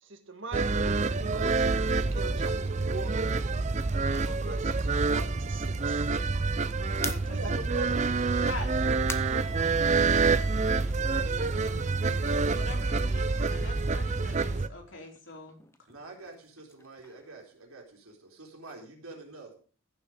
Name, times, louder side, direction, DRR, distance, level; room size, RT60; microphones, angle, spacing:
voice 1, 0.0-3.1 3.9-6.1 7.3-8.1, right 3 dB, 60° right, 7 dB, 1.6 m, -42 dB
sound 1, 0.5-14.7, right 4 dB, 30° right, 0.5 m, -27 dB
voice 2, 7.0-7.4 8.4-15.6, left 2 dB, 60° left, 1 dB, 3.3 m, -45 dB
sound 2, 7.0-10.3 10.7-13.7 14.0-18.1, left 3 dB, 10° left, 0.7 m, -46 dB
voice 3, 15.9-17.8 18.3-19.6, right 3 dB, 80° right, 1 dB, 3.9 m, -47 dB
15.0 x 6.9 x 5.2 m, 0.41 s
head